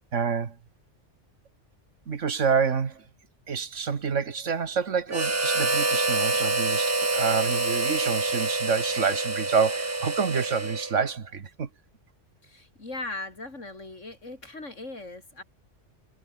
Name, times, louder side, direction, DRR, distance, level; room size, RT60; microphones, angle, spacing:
voice 1, 0.1-0.6 2.1-3.1 3.5-11.7, right 6 dB, 80° right, 1.9 m, -28 dB
Harmonica, 5.1-11.1, right 2 dB, 15° right, 0.7 m, -27 dB
voice 2, 12.4-15.4, left 2 dB, 90° left, 4.9 m, -39 dB
omnidirectional pair, 1.2 m